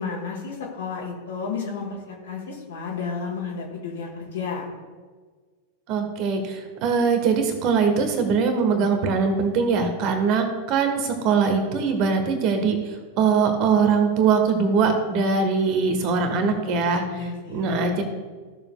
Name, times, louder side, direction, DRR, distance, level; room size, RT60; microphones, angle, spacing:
voice 1, 0.0-4.7 17.1-17.8, left 5 dB, 60° left, -2 dB, 2.0 m, -32 dB
voice 2, 5.9-18.0, right 5 dB, 40° right, 6 dB, 1.4 m, -22 dB
15.0 x 6.9 x 2.3 m, 1.5 s
figure-of-eight pair, 90°, 0 cm